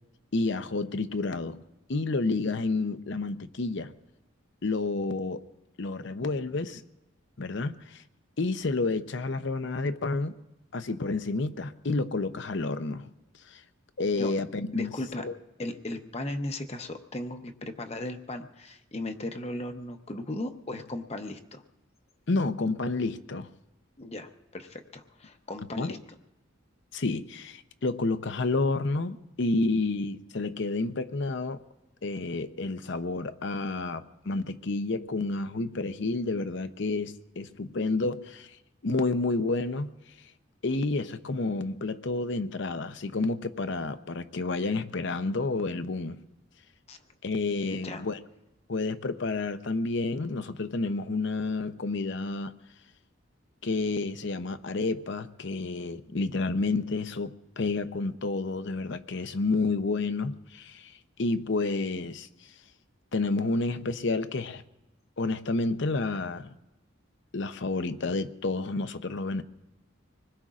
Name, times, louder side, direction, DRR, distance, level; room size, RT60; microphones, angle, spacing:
voice 1, 0.3-1.6 1.9-3.9 4.6-5.4 5.8-6.8 7.4-8.0 8.4-10.3 10.7-13.1 13.5-13.6 14.0-14.9 15.2-15.4 22.3-23.5 25.8-26.0 26.9-31.6 32.0-38.5 38.8-39.9 40.6-46.2 47.2-48.2 48.7-52.6 53.6-60.9 61.2-62.3 63.1-64.6 65.2-66.5 67.3-69.4, left 3 dB, 60° left, 0.7 m, -30 dB
voice 2, 14.7-15.2 15.6-21.6 24.0-26.0 46.9-47.0 47.7-48.1, left 1 dB, 30° left, 0.8 m, -36 dB
25.5 x 20.5 x 2.5 m
head